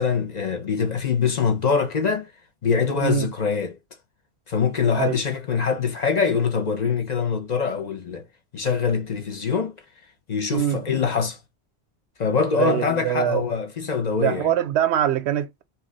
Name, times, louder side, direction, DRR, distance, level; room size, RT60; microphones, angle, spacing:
voice 1, 0.0-2.3 2.6-3.8 4.5-8.3 8.5-9.8 10.3-11.4 12.2-14.5, left 6 dB, 50° left, 0.6 m, -24 dB
voice 2, 10.5-10.8 12.5-13.4 14.2-15.6, right 11 dB, 90° right, 0.9 m, -23 dB
2.8 x 2.3 x 3.8 m
omnidirectional pair, 1.1 m